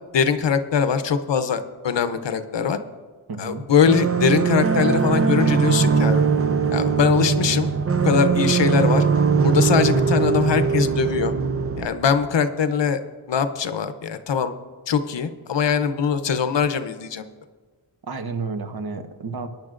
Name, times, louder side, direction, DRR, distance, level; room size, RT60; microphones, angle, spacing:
voice 1, 0.1-2.8 3.4-6.2 6.7-7.7 8.0-9.1 9.4-11.3 11.8-13.0 13.3-14.5 14.9-17.3, left 6 dB, 60° left, 10 dB, 0.8 m, -22 dB
voice 2, 3.3-3.7 18.1-19.5, right 4 dB, 50° right, 7 dB, 1.1 m, -31 dB
sound 1, 3.9-11.9, right 5 dB, 30° right, 0.6 m, -20 dB
21.0 x 10.5 x 2.5 m, 1.4 s
wide cardioid pair, 95°, 49 cm